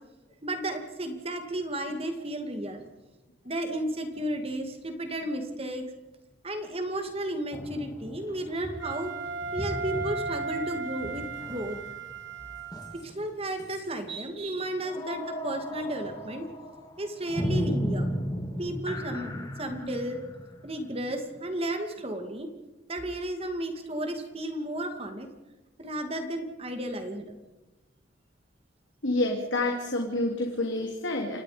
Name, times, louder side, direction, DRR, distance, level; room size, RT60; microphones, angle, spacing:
voice 1, 0.4-2.8 3.4-5.8 6.4-9.1 9.5-11.8 13.0-16.5 17.0-18.1 18.6-20.2 20.6-22.5 22.9-25.3 25.8-27.3, right 1 dB, 30° right, 6 dB, 2.4 m, -33 dB
sound 1, 4.2-4.3 7.5-13.3 13.6-13.9 14.8-21.5, equal, 20° left, 2.7 m, -36 dB
Wind instrument woodwind instrument, 8.8-13.1, right 4 dB, 70° right, 2.4 m, -36 dB
voice 2, 29.0-31.4, left 2 dB, 85° left, 2 dB, 2.8 m, -28 dB
29.5 x 17.5 x 5.1 m, 1.1 s
head